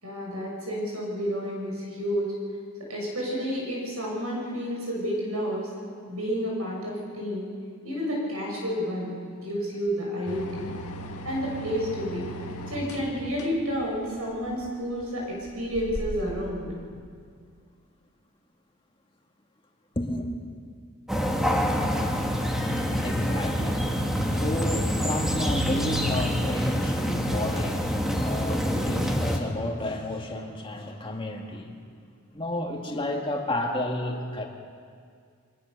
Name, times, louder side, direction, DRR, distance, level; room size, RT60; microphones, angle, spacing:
voice 1, 0.0-2.3 2.8-5.7 6.1-7.5 7.8-10.7 11.2-12.3 12.7-16.7, equal, 80° right, -2 dB, 7.0 m, -30 dB
sound 1, 10.3-16.5, equal, 85° left, 1.7 m, -39 dB
voice 2, 20.0-20.3 22.4-31.8 32.3-34.5, left 1 dB, 25° left, 1 dB, 2.3 m, -32 dB
sound 2, 21.1-29.4, equal, ahead, 1.8 m, -26 dB
23.5 x 21.5 x 6.9 m, 2.2 s
head